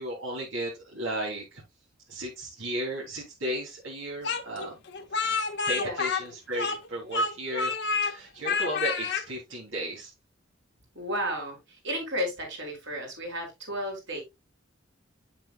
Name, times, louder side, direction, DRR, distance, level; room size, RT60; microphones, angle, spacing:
voice 1, 0.0-1.6 2.1-4.7 5.7-10.1, right 1 dB, 85° right, 3.2 m, -35 dB
Speech, 4.2-6.9 7.1-8.1 8.4-9.2, left 4 dB, 60° left, 1.2 m, -28 dB
voice 2, 5.7-6.0 10.9-14.2, equal, 65° right, 4.1 m, -33 dB
9.0 x 7.4 x 2.4 m
head